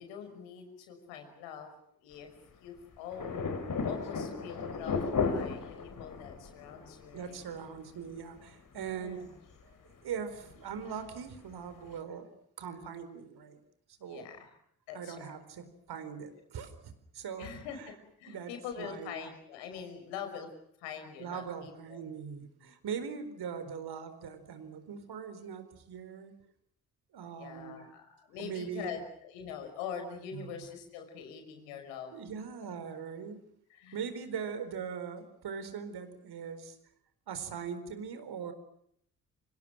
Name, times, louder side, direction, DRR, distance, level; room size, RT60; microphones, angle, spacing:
voice 1, 0.0-1.7 2.0-2.3 2.6-3.4 3.8-7.4 8.7-9.3 14.0-14.5 14.9-15.3 17.4-20.5 20.8-22.0 22.6-22.7 27.4-32.1 33.7-34.0, left 7 dB, 75° left, 6 dB, 5.6 m, -44 dB
sound 1, 3.1-8.5 8.8-8.9 9.5-9.6 10.4-11.0 11.4-11.5 12.0-12.1, left 5 dB, 45° left, 3.9 m, -35 dB
voice 2, 7.1-9.3 9.6-12.3 12.6-13.6 14.0-14.3 14.9-17.9 18.3-19.2 21.2-26.3 27.1-27.9 28.4-28.9 30.3-30.6 32.1-33.4 33.9-36.8 37.3-38.5, right 7 dB, 55° right, 10 dB, 4.4 m, -41 dB
29.0 x 26.0 x 6.2 m, 0.70 s
figure-of-eight pair, 45°, 46 cm